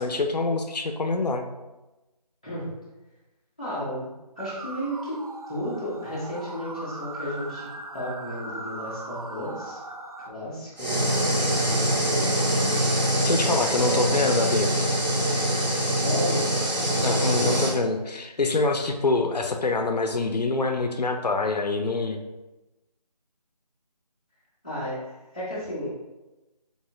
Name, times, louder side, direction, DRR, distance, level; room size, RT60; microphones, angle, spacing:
voice 1, 0.0-1.4 13.2-14.8 17.0-22.2, left 3 dB, 75° left, 5 dB, 0.5 m, -25 dB
voice 2, 3.6-5.2 5.5-9.8 10.3-12.7 13.4-14.1 15.9-16.5 17.0-17.1 17.4-17.5 24.6-25.9, equal, 10° left, -11 dB, 0.6 m, -34 dB
sound 1, 4.4-10.3, right 2 dB, 60° right, 0.5 m, -39 dB
sound 2, 10.8-17.7, right 1 dB, 90° right, 1.1 m, -24 dB
4.1 x 3.5 x 2.4 m, 1.1 s
figure-of-eight pair, 165°, 21 cm